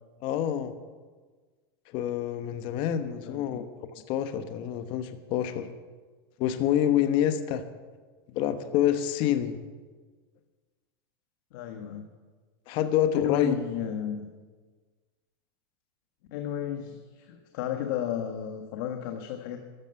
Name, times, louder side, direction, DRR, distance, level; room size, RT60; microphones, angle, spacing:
voice 1, 0.2-0.7 1.9-3.7 4.1-5.7 6.4-7.6 8.3-9.6 12.7-13.6, left 10 dB, 40° left, 9 dB, 1.1 m, -27 dB
voice 2, 3.2-3.6 11.5-12.1 13.1-14.2 16.3-19.6, left 9 dB, 60° left, 5 dB, 1.4 m, -33 dB
13.5 x 13.5 x 6.9 m, 1.4 s
supercardioid pair, 165°, 13 cm